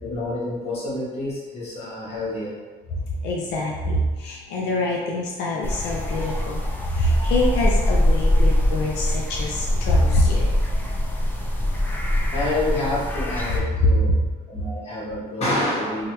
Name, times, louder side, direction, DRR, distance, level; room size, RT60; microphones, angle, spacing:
voice 1, 0.0-2.6 12.3-14.1 14.5-16.1, left 1 dB, 40° left, -7 dB, 1.3 m, -27 dB
voice 2, 3.1-10.6 13.8-14.2, left 1 dB, 90° left, -3 dB, 0.5 m, -24 dB
sound 1, 5.6-13.6, left 1 dB, 10° left, 0.4 m, -23 dB
3.1 x 2.4 x 2.9 m, 1.3 s
cardioid pair, 110°, 17 cm